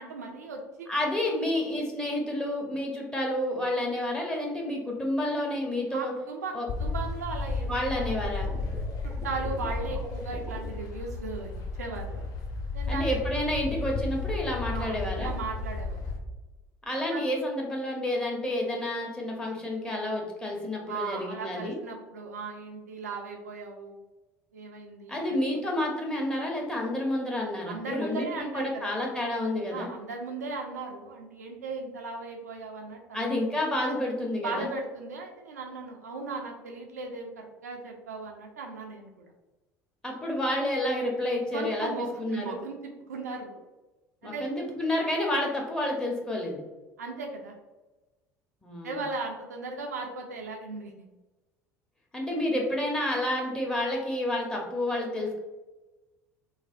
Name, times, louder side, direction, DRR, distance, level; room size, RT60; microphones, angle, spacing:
voice 1, 0.0-0.9 5.9-6.5 6.8-8.5 9.2-11.5 11.8-12.2 12.7-13.2 14.7-16.0 17.0-17.2 20.9-24.0 24.5-25.6 27.7-29.0 29.7-33.4 34.4-39.3 41.5-43.6 44.2-44.5 47.0-47.5 48.8-51.1, right 3 dB, 80° right, 1 dB, 0.4 m, -37 dB
voice 2, 0.9-6.1 6.5-6.7 7.7-8.5 12.9-15.3 16.9-21.8 25.1-29.9 33.1-34.7 40.0-41.9 42.2-42.6 44.2-46.6 48.6-49.0 52.1-55.4, left 1 dB, 10° left, -1 dB, 0.8 m, -30 dB
sound 1, 6.7-16.2, left 3 dB, 50° left, 0.5 m, -33 dB
sound 2, 8.5-10.7, right 3 dB, 20° right, 0.5 m, -44 dB
3.1 x 2.0 x 2.5 m, 1.1 s
figure-of-eight pair, 60°, 9 cm